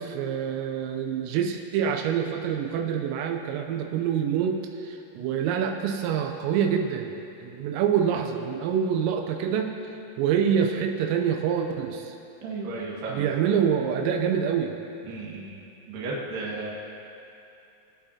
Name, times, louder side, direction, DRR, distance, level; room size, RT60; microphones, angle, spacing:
voice 1, 0.0-7.1 7.4-9.7 10.2-12.2 13.1-14.8, right 8 dB, 85° right, 3 dB, 3.3 m, -26 dB
voice 2, 12.4-13.3 15.0-15.6 15.9-16.8, right 3 dB, 55° right, -5 dB, 2.7 m, -34 dB
22.5 x 8.9 x 2.8 m, 2.7 s
omnidirectional pair, 5.9 m